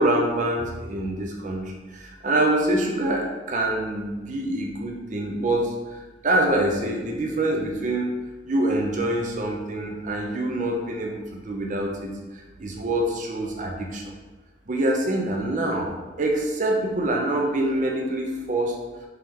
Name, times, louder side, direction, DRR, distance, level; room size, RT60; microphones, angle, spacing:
voice 1, 0.0-6.0 6.2-8.1 8.5-14.0 14.7-18.8, right 1 dB, 40° right, 0 dB, 0.5 m, -25 dB
4.5 x 3.2 x 3.6 m, 1.3 s
head